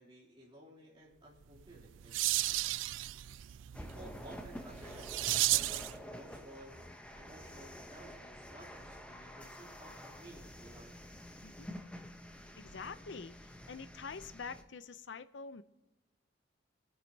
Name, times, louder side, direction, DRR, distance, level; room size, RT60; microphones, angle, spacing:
voice 1, 0.0-2.3 3.8-6.9 7.1-10.9, right 1 dB, 30° right, -6 dB, 3.0 m, -55 dB
sound 1, 1.6-6.0, right 16 dB, 90° right, 0.3 m, -34 dB
sound 2, 3.7-14.6, equal, 5° left, 0.7 m, -49 dB
voice 2, 12.6-13.3 13.7-15.6, left 5 dB, 75° left, 13 dB, 0.5 m, -45 dB
24.5 x 8.8 x 2.8 m, 1.1 s
head